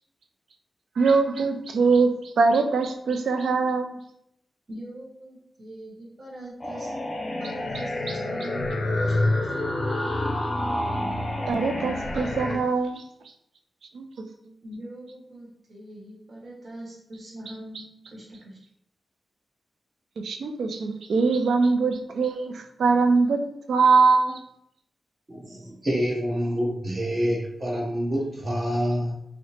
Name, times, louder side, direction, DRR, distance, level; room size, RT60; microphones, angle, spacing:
voice 1, 1.0-4.0 8.1-8.2 11.5-13.0 13.9-14.1 20.2-23.4 23.7-24.4, right 4 dB, 90° right, 6 dB, 0.4 m, -22 dB
voice 2, 4.7-6.9 7.4-8.7 9.0-9.5 14.6-18.6, right 1 dB, 45° right, -4 dB, 1.2 m, -42 dB
sound 1, 6.6-12.6, left 1 dB, 35° left, 0.6 m, -27 dB
voice 3, 25.3-29.1, equal, 25° right, -4 dB, 1.0 m, -27 dB
2.8 x 2.1 x 4.1 m, 0.77 s
wide cardioid pair, 140°, 0 cm